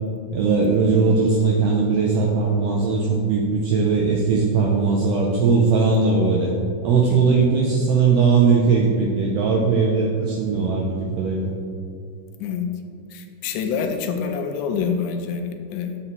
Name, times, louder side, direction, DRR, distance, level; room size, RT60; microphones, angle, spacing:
voice 1, 0.3-6.5 6.8-11.5, right 4 dB, 90° right, -1 dB, 1.4 m, -19 dB
voice 2, 13.1-16.0, left 6 dB, 85° left, 6 dB, 2.0 m, -26 dB
8.0 x 4.3 x 2.9 m, 2.4 s
omnidirectional pair, 3.4 m